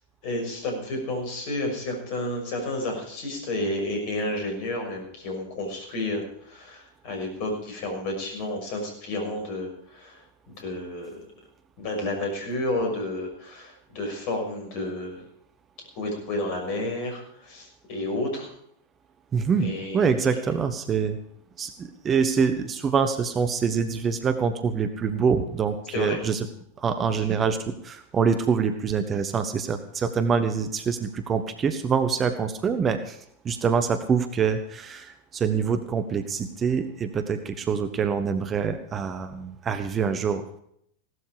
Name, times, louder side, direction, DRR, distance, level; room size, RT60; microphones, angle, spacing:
voice 1, 0.2-11.2 11.8-15.2 16.0-18.5 19.6-20.3 25.9-26.2 27.2-27.3, left 1 dB, 45° left, 3 dB, 6.2 m, -31 dB
voice 2, 19.3-21.2 21.6-26.5 26.8-33.2 33.4-40.6, right 6 dB, 25° right, 9 dB, 1.2 m, -25 dB
17.0 x 12.5 x 5.1 m, 0.69 s
figure-of-eight pair, 90°, 0 cm